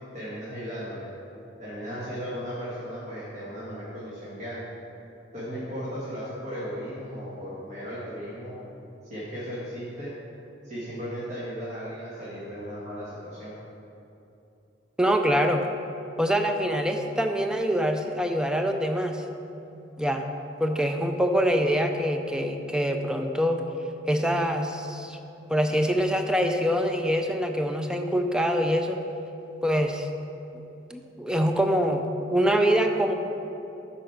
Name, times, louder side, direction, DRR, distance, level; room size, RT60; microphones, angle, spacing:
voice 1, 0.1-1.1 1.6-4.6 5.3-8.6 9.1-10.1 10.6-13.5, equal, 40° right, -9 dB, 1.7 m, -36 dB
voice 2, 15.0-15.6 16.2-19.2 20.0-20.3 20.6-23.6 24.1-25.2 25.5-29.0 29.6-30.1 30.9-33.1, equal, 5° right, 4 dB, 0.5 m, -24 dB
8.7 x 5.2 x 5.9 m, 2.9 s
head